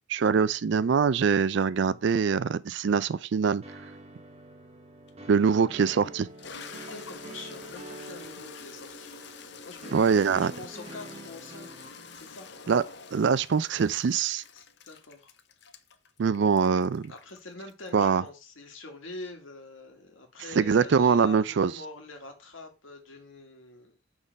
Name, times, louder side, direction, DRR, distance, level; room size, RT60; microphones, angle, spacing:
voice 1, 0.1-3.6 5.3-6.3 9.9-10.5 12.7-12.8 13.1-14.4 16.2-17.1 17.9-18.2 20.6-21.7, right 6 dB, 60° right, 0.4 m, -23 dB
sound 1, 3.6-11.9, right 1 dB, 30° right, 0.9 m, -46 dB
Toilet flush, 5.1-5.2 5.8-18.3, left 5 dB, 60° left, 0.7 m, -47 dB
voice 2, 6.7-9.1 9.6-11.9 12.1-12.5 14.5-15.3 17.1-24.0, left 2 dB, 75° left, 1.6 m, -45 dB
6.3 x 3.7 x 5.2 m
head